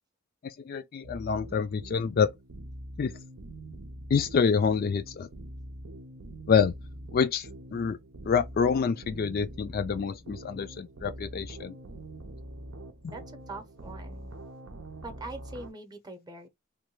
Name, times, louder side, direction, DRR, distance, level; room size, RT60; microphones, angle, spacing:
voice 1, 0.4-2.3 3.0-3.1 4.1-5.3 6.5-6.7 7.1-8.0 8.3-11.8, left 6 dB, 45° left, 0.3 m, -27 dB
sound 1, 1.0-15.7, right 1 dB, 90° right, 0.7 m, -44 dB
voice 2, 13.1-14.3 15.0-16.5, right 2 dB, 20° right, 0.7 m, -43 dB
3.2 x 2.2 x 3.1 m
head